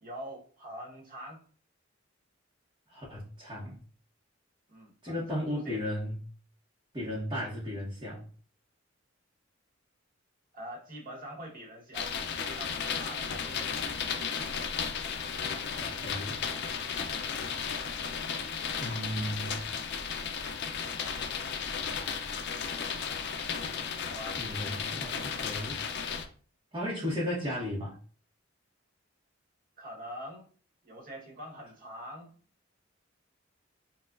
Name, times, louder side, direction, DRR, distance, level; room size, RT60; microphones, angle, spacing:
voice 1, 0.0-1.4 4.7-5.8 10.5-14.6 23.9-24.4 29.8-30.5 30.8-32.3, equal, 45° right, -1 dB, 1.2 m, -45 dB
voice 2, 2.9-3.8 5.0-6.2 6.9-8.3 15.8-16.4 18.8-19.6 24.4-25.8 26.7-28.0, equal, 20° right, -7 dB, 1.0 m, -35 dB
sound 1, 11.9-26.2, left 6 dB, 60° left, 0.5 m, -34 dB
5.8 x 2.3 x 2.5 m, 0.42 s
head